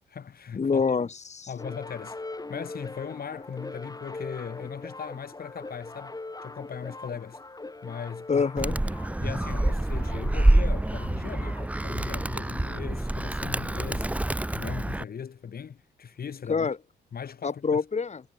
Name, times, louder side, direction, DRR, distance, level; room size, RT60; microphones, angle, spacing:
voice 1, 0.0-0.8 1.5-2.2 2.5-7.4 7.8-8.5 9.2-14.1 14.5-16.7 17.1-17.8, left 7 dB, 55° left, 3.0 m, -39 dB
voice 2, 0.6-1.5 8.3-8.8 16.5-16.8 17.4-18.2, left 5 dB, 35° left, 3.1 m, -26 dB
sound 1, 1.6-11.7, left 2 dB, 20° left, 7.9 m, -42 dB
Animal, 8.6-15.0, right 1 dB, 5° right, 0.8 m, -26 dB
cardioid pair, 90°, 19 cm